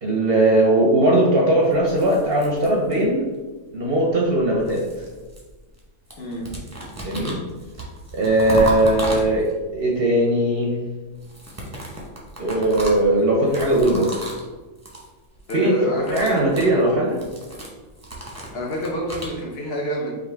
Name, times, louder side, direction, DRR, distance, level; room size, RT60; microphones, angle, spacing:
voice 1, 0.0-3.3 3.7-4.9 7.0-7.4 8.1-10.8 12.4-14.2 15.5-15.8 16.1-17.2, right 1 dB, 55° right, -2 dB, 0.7 m, -19 dB
sound 1, 1.7-3.3 4.2-5.8 6.1-9.7 11.1-14.5 14.8-15.1 15.4-15.7 16.0-19.4, right 1 dB, 15° right, 0.7 m, -33 dB
voice 2, 15.5-16.4 18.5-20.1, equal, 55° left, -2 dB, 1.0 m, -27 dB
5.1 x 2.5 x 3.3 m, 1.2 s
omnidirectional pair, 1.4 m